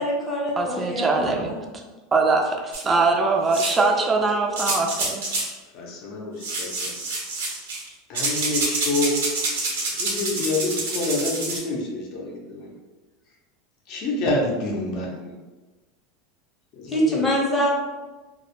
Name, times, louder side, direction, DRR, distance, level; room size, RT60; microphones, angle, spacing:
voice 1, 0.0-1.7 16.9-17.7, equal, 15° left, -4 dB, 0.7 m, -25 dB
voice 2, 0.6-1.5 2.1-5.4, right 3 dB, 20° right, 3 dB, 0.4 m, -22 dB
sound 1, 2.7-2.8 3.5-3.9 4.6-5.5 6.4-7.9 8.1-11.6, right 2 dB, 85° right, 0.7 m, -27 dB
voice 3, 5.7-6.9 8.1-9.2 9.9-12.7 13.9-15.4 16.7-17.3, left 2 dB, 50° left, -2 dB, 0.6 m, -27 dB
2.1 x 2.0 x 2.9 m, 1.2 s
supercardioid pair, 120°, 0 cm